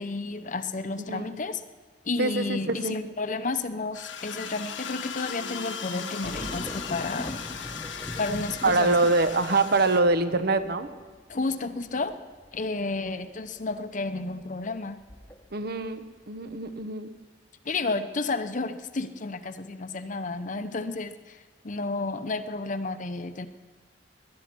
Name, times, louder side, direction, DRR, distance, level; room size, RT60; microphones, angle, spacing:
voice 1, 0.0-1.6 2.0-7.4 8.2-8.9 11.3-12.2 12.5-15.0 17.6-23.5, left 3 dB, 45° left, 10 dB, 0.7 m, -31 dB
voice 2, 2.2-3.0 8.6-10.9 15.5-17.1, right 3 dB, 55° right, 10 dB, 0.9 m, -24 dB
sound 1, 3.9-10.0, left 6 dB, 90° left, 1.3 m, -37 dB
sound 2, 6.2-15.9 16.3-16.8, equal, 10° left, 1.0 m, -42 dB
19.5 x 11.5 x 6.1 m, 1.4 s
head